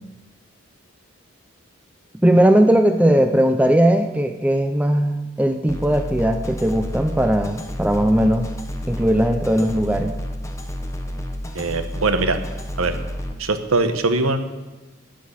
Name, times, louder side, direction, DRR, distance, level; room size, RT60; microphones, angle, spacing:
voice 1, 2.2-8.5 8.9-10.2, right 1 dB, 5° right, 6 dB, 0.5 m, -18 dB
sound 1, 5.7-13.3, left 1 dB, 15° left, 1.1 m, -30 dB
voice 2, 11.5-12.4 12.8-13.0 13.4-14.4, right 3 dB, 85° right, 9 dB, 1.1 m, -21 dB
10.5 x 9.5 x 7.2 m, 1.1 s
head